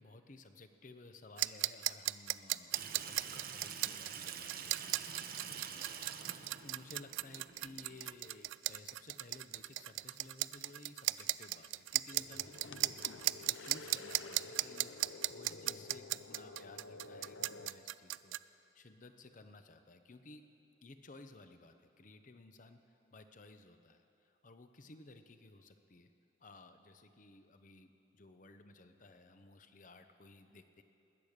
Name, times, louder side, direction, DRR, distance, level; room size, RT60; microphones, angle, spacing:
voice 1, 0.0-15.0 15.3-20.4 20.8-26.1 26.4-30.8, left 2 dB, 45° left, 8 dB, 0.8 m, -57 dB
sound 1, 1.4-18.4, right 17 dB, 90° right, 0.3 m, -36 dB
Water tap faucet / Sink (filling or washing), 2.7-8.1, right 7 dB, 50° right, 0.8 m, -47 dB
sound 2, 12.1-17.7, left 3 dB, 85° left, 0.7 m, -51 dB
20.5 x 8.9 x 6.6 m, 2.8 s
head